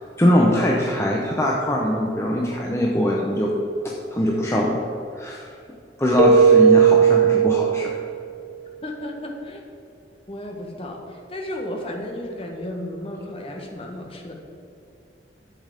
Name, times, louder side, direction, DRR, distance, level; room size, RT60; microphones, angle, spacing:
voice 1, 0.2-3.5 3.8-4.8 5.2-5.4 6.0-7.9, equal, 15° left, -2 dB, 0.9 m, -21 dB
Keyboard (musical), 6.2-8.2, right 6 dB, 40° right, 0.5 m, -16 dB
voice 2, 8.8-9.6 10.3-14.3, left 1 dB, 35° left, 1 dB, 1.6 m, -33 dB
11.0 x 8.0 x 5.2 m, 2.6 s
head